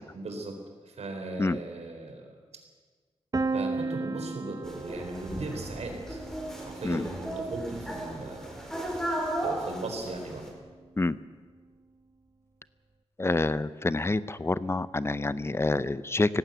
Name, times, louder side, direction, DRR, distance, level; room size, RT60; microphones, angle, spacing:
voice 1, 0.1-0.6 0.9-2.3 3.5-6.2 6.6-8.7 9.4-10.4, right 2 dB, 80° right, 3 dB, 4.2 m, -37 dB
Piano, 3.3-9.1, right 3 dB, 35° right, 1.1 m, -36 dB
sound 1, 4.6-10.5, right 1 dB, 5° left, 4.5 m, -35 dB
voice 2, 13.2-16.4, left 2 dB, 25° left, 16 dB, 0.6 m, -27 dB
18.5 x 15.5 x 9.3 m, 1.5 s
wide cardioid pair, 110°, 11 cm